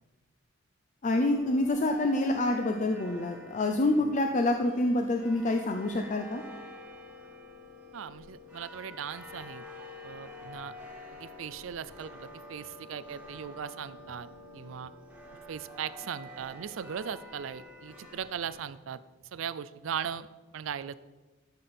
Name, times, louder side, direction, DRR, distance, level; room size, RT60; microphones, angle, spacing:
voice 1, 1.0-6.4, left 2 dB, 40° left, 5 dB, 0.6 m, -27 dB
sound 1, 1.1-18.7, left 1 dB, 5° right, 1.5 m, -48 dB
voice 2, 7.9-9.6 10.0-10.7 11.1-14.3 14.5-14.9 15.3-19.0 19.3-20.3 20.5-20.9, right 8 dB, 70° right, 16 dB, 0.4 m, -38 dB
12.5 x 6.9 x 4.3 m, 1.2 s
head